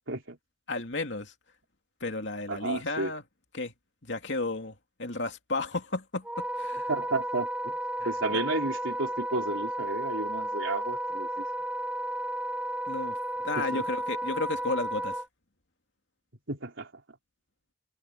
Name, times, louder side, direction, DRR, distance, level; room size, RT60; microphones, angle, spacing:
voice 1, 0.1-0.4 2.5-3.1 6.9-7.7 8.1-11.5 13.6-13.8 16.5-16.9, right 2 dB, 85° right, 3.7 m, -32 dB
voice 2, 0.7-1.3 2.0-3.2 3.5-3.7 4.0-6.9 8.0-8.4 12.9-13.2 13.4-15.2, left 2 dB, 70° left, 2.7 m, -33 dB
Wind instrument woodwind instrument, 6.2-15.3, right 1 dB, 5° right, 1.0 m, -33 dB
head